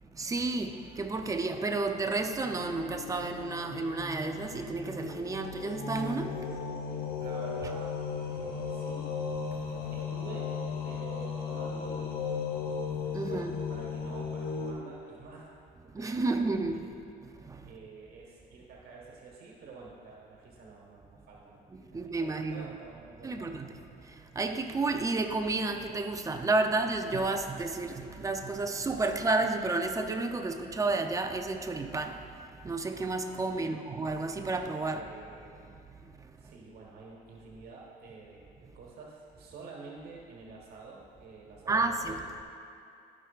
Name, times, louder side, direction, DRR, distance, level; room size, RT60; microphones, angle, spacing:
voice 1, 0.1-6.4 13.1-13.5 15.9-16.8 17.4-17.7 21.7-22.7 23.2-23.7 24.0-32.2 32.6-35.0 36.4-36.5 41.7-42.2, right 3 dB, 20° right, 6 dB, 0.5 m, -31 dB
sound 1, 2.1-14.7, left 5 dB, 60° left, 1.1 m, -36 dB
voice 2, 6.5-8.0 8.3-9.2 9.9-10.6 10.8-12.6 13.2-15.5 15.8-16.8 17.6-21.7 22.1-23.6 33.5-33.8 34.8-35.8 36.4-42.4, right 4 dB, 65° right, -2 dB, 1.3 m, -48 dB
13.5 x 6.0 x 2.4 m, 2.6 s
cardioid pair, 110°, 17 cm